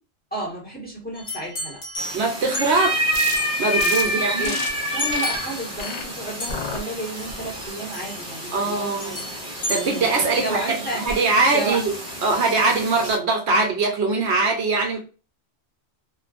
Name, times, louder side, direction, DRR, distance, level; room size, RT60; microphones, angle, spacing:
voice 1, 0.3-1.8 4.0-4.5 4.9-9.2 10.3-11.8, right 1 dB, 10° left, -5 dB, 1.2 m, -32 dB
sound 1, 1.1-3.0 3.4-3.6 5.0-6.1 6.4-6.9 7.2-7.4 7.9-8.4 9.0-10.3, left 2 dB, 60° left, 1.2 m, -33 dB
sound 2, 2.0-13.2, equal, 40° left, 1.1 m, -29 dB
voice 2, 2.1-3.0 3.6-4.6 8.5-9.2 9.7-11.9 12.2-15.0, right 3 dB, 70° right, 2 dB, 0.9 m, -22 dB
sound 3, 3.1-3.4 3.8-4.0 4.4-4.7 5.1-5.4 5.8-6.0 6.5-6.8 7.3-7.7, left 4 dB, 85° left, 1.0 m, -30 dB
2.5 x 2.5 x 2.4 m, 0.33 s
omnidirectional pair, 1.2 m